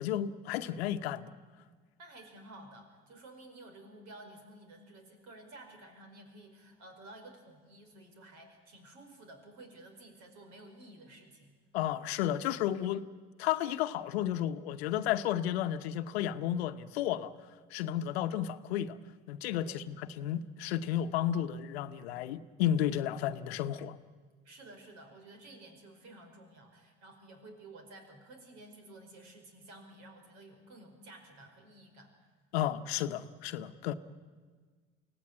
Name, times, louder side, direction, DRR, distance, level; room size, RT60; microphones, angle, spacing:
voice 1, 0.0-1.3 11.7-13.0 13.4-17.3 17.7-19.0 19.3-24.0 32.5-33.9, left 11 dB, 80° left, 11 dB, 1.0 m, -32 dB
voice 2, 2.0-11.5 19.6-19.8 24.4-32.1, right 2 dB, 60° right, 5 dB, 5.2 m, -53 dB
24.0 x 17.0 x 9.6 m, 1.5 s
hypercardioid pair, 65°, 31 cm